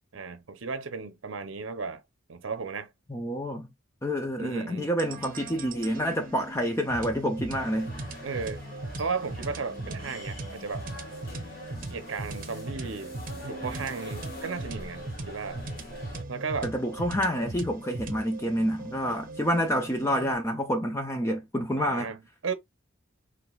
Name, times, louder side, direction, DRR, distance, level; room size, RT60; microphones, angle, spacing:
voice 1, 0.1-2.0 2.3-2.9 4.4-4.9 8.2-8.6 9.0-10.9 11.9-13.1 13.4-15.6 16.3-16.7 21.8-22.5, right 5 dB, 65° right, 0.7 m, -35 dB
voice 2, 3.1-3.7 4.0-7.9 16.6-22.1, equal, 15° left, 0.6 m, -28 dB
sound 1, 5.0-20.3, right 2 dB, 40° right, 0.9 m, -39 dB
sound 2, 7.5-16.2, left 1 dB, 45° left, 2.2 m, -45 dB
4.9 x 3.3 x 2.3 m
head